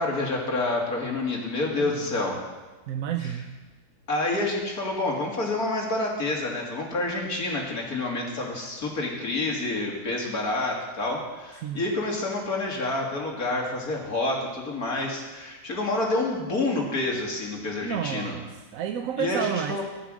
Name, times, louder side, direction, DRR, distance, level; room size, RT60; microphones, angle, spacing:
voice 1, 0.0-2.4 3.2-3.3 4.1-18.4 19.2-19.8, left 2 dB, 70° left, -1 dB, 2.9 m, -28 dB
voice 2, 1.8-2.4 2.9-3.5 11.6-11.8 17.8-19.8, right 9 dB, 65° right, 6 dB, 1.0 m, -31 dB
14.0 x 11.0 x 6.3 m, 1.2 s
omnidirectional pair, 1.6 m